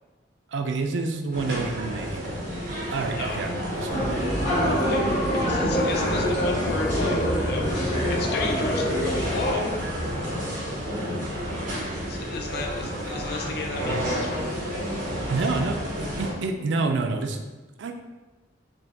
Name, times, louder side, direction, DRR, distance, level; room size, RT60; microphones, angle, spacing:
voice 1, 0.5-2.2 2.9-4.0 12.8-13.2 15.3-17.4 17.8-17.9, right 3 dB, 70° right, 5 dB, 0.4 m, -28 dB
sound 1, 1.3-16.3, equal, 50° right, 1.3 m, -31 dB
people chatting background, 3.9-9.5, equal, 40° left, 1.2 m, -25 dB
voice 2, 4.9-9.8 12.1-14.5, left 3 dB, 60° left, 1 dB, 0.5 m, -32 dB
5.1 x 2.2 x 3.5 m, 1.2 s
head